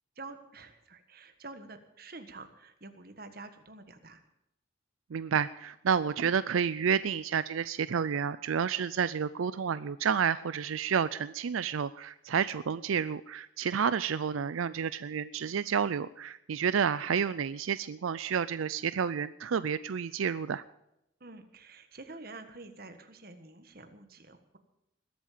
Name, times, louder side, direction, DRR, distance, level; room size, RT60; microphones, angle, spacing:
voice 1, 0.1-4.2 21.2-24.6, right 3 dB, 45° right, 8 dB, 1.5 m, -48 dB
voice 2, 5.1-20.6, right 7 dB, 85° right, 15 dB, 0.4 m, -30 dB
20.5 x 8.5 x 7.4 m, 0.83 s
head